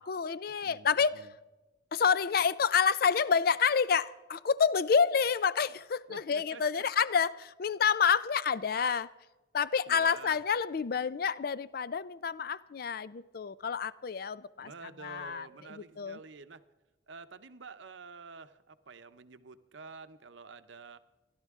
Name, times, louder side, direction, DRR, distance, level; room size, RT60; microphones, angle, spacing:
voice 1, 0.1-1.3 1.9-9.1 9.5-14.7 15.0-16.2, left 6 dB, 50° left, 0.4 m, -28 dB
voice 2, 0.6-1.3 6.1-6.8 9.9-10.4 14.6-16.6 17.1-21.0, right 4 dB, 70° right, 0.7 m, -49 dB
29.0 x 11.5 x 3.6 m
head